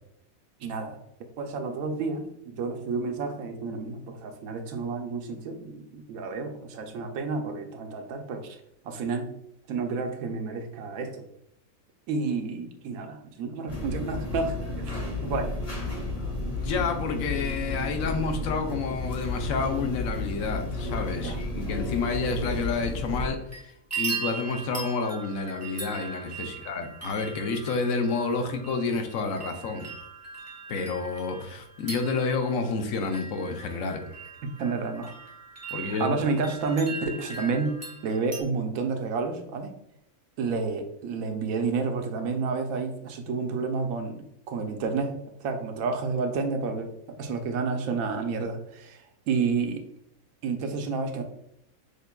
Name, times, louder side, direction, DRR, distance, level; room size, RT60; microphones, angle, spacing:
voice 1, 0.6-1.0 1.4-8.6 8.8-9.3 9.7-11.2 12.1-15.5 21.2-21.4 26.4-26.5 34.4-35.1 36.0-39.7 40.4-45.1 45.4-46.9 47.2-49.0 49.3-49.8 50.4-51.2, right 4 dB, 75° right, 5 dB, 1.0 m, -30 dB
sound 1, 13.7-23.3, left 2 dB, 30° left, 1.7 m, -32 dB
voice 2, 16.4-29.9 30.7-34.1 35.7-36.2, left 4 dB, 75° left, 5 dB, 1.0 m, -29 dB
sound 2, 23.2-23.6 23.9-38.4, right 5 dB, 20° right, 0.4 m, -39 dB
6.4 x 2.5 x 2.2 m, 0.77 s
omnidirectional pair, 1.5 m